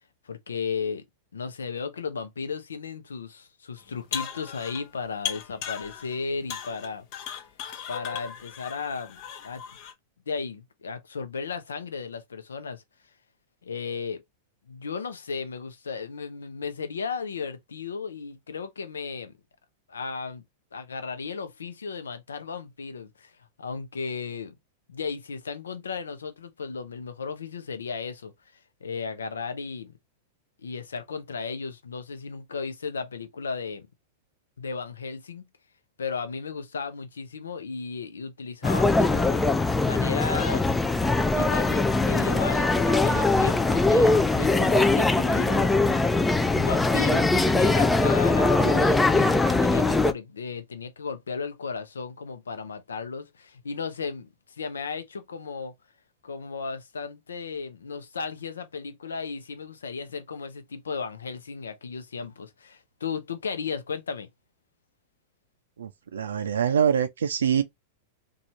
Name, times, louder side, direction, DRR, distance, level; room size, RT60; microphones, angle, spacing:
voice 1, 0.2-1.0 1.3-7.3 7.9-9.6 10.3-12.8 13.6-14.2 14.7-19.3 19.9-20.4 20.7-23.3 23.6-24.5 24.9-28.3 28.8-29.9 30.6-33.9 34.6-35.4 36.0-39.4 39.8-40.7 41.3-46.1 46.5-55.7 56.2-64.3, left 5 dB, 90° left, 0.6 m, -35 dB
sound 1, 3.9-4.9 5.3-6.2 6.5-9.9, left 9 dB, 50° left, 0.8 m, -37 dB
sound 2, 38.6-50.1, left 3 dB, 10° left, 0.3 m, -21 dB
voice 2, 65.8-67.6, right 8 dB, 85° right, 0.4 m, -24 dB
2.6 x 2.4 x 2.8 m
hypercardioid pair, 105°, 0 cm